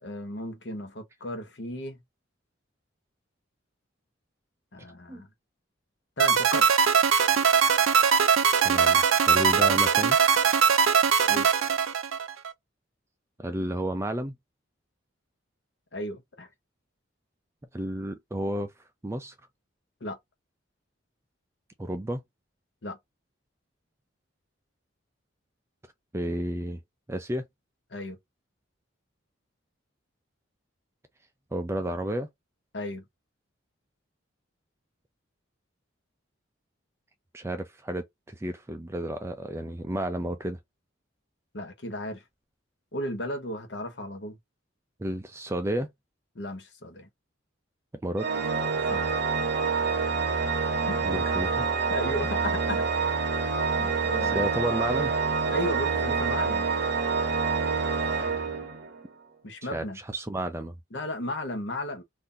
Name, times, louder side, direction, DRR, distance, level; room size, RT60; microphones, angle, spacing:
voice 1, 0.0-2.0 4.7-5.3 6.2-6.6 11.3-11.5 15.9-16.5 20.0-20.2 22.8-23.0 27.9-28.2 32.7-33.0 41.5-42.2 42.9-44.4 46.3-47.1 48.9-49.2 50.8-51.2 51.9-52.9 53.8-54.4 55.5-56.7 59.4-60.0 60.9-62.0, left 1 dB, 60° left, 1.0 m, -34 dB
sound 1, 6.2-12.5, right 6 dB, 85° right, 0.5 m, -21 dB
voice 2, 8.6-10.2 13.4-14.4 17.7-18.7 19.0-19.3 21.8-22.2 26.1-26.8 27.1-27.4 31.5-32.3 37.3-40.6 45.0-45.9 48.0-48.3 51.0-51.7 54.3-55.1 59.6-60.7, right 1 dB, 15° right, 0.4 m, -31 dB
Organ, 48.2-59.1, right 5 dB, 55° right, 0.8 m, -27 dB
2.6 x 2.6 x 3.7 m
head